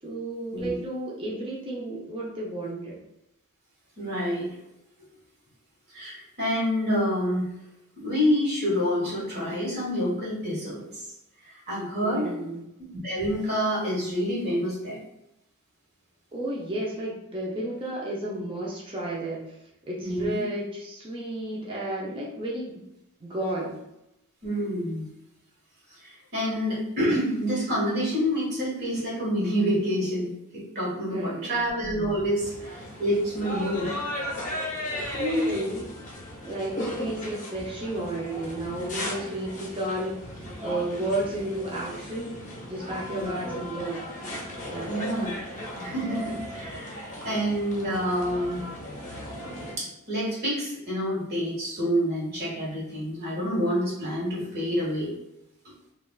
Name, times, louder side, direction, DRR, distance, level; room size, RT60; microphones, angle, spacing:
voice 1, 0.0-3.0 12.0-12.7 16.3-19.6 19.9-22.8 23.2-23.8 31.1-31.6 35.1-35.9 36.4-44.0 44.7-44.9, right 1 dB, 25° right, -5 dB, 0.5 m, -32 dB
voice 2, 4.0-4.5 5.9-7.5 8.0-11.0 11.4-12.3 12.9-15.0 20.0-20.4 24.4-25.1 26.0-33.9 43.1-43.3 44.8-45.3 45.8-48.6 49.8-55.1, equal, 45° right, -6 dB, 1.3 m, -28 dB
sound 1, 32.4-49.8, left 1 dB, 35° left, 0.6 m, -36 dB
3.3 x 2.3 x 2.3 m, 0.87 s
head